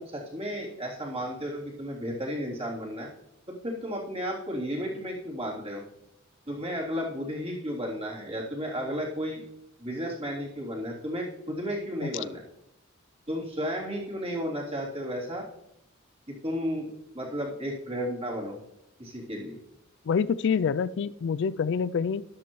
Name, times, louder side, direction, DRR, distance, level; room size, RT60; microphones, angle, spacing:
voice 1, 0.0-3.1 3.5-5.8 6.5-9.5 9.8-12.4 13.3-15.5 16.3-16.9 17.1-18.6 19.0-19.6, equal, 30° right, -4 dB, 3.3 m, -33 dB
voice 2, 20.1-22.2, left 6 dB, 65° left, 17 dB, 0.4 m, -26 dB
13.0 x 11.0 x 3.1 m, 0.84 s
head